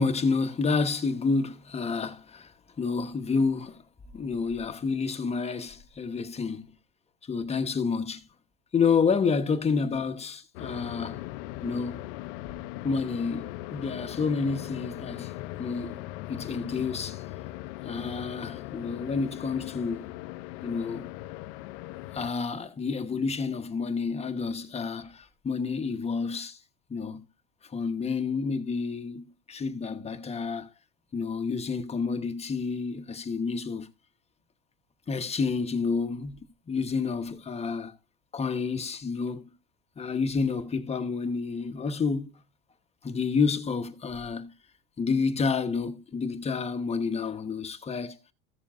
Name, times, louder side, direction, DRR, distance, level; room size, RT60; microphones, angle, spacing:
voice 1, 0.0-3.8 4.1-6.7 7.3-8.2 8.7-11.2 11.6-12.1 12.8-15.3 15.6-16.0 16.3-17.2 17.8-20.1 20.6-21.1 22.1-26.6 26.9-27.2 27.6-30.7 31.1-33.9 35.1-36.4 36.7-37.9 38.3-39.5 40.0-42.3 43.0-44.5 45.0-48.2, left 5 dB, 20° left, 1.0 m, -29 dB
sound 1, 10.5-22.3, left 17 dB, 75° left, 0.6 m, -39 dB
15.0 x 7.0 x 2.5 m
supercardioid pair, 115°, 31 cm